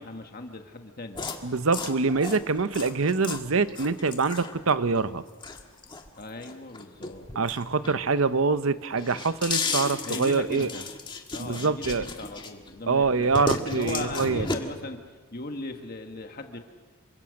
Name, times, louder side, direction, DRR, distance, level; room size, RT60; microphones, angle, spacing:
voice 1, 0.0-1.3 6.1-7.3 10.0-10.9 11.3-15.0 15.3-16.6, left 2 dB, 45° left, 5 dB, 1.5 m, -38 dB
sound 1, 1.1-8.3 8.6-12.7 13.0-14.5, left 3 dB, 20° left, 1.7 m, -34 dB
voice 2, 1.4-5.2 7.3-10.7 11.4-12.0 12.9-14.5, right 4 dB, 70° right, 14 dB, 0.8 m, -25 dB
27.5 x 24.5 x 6.5 m, 1.4 s
head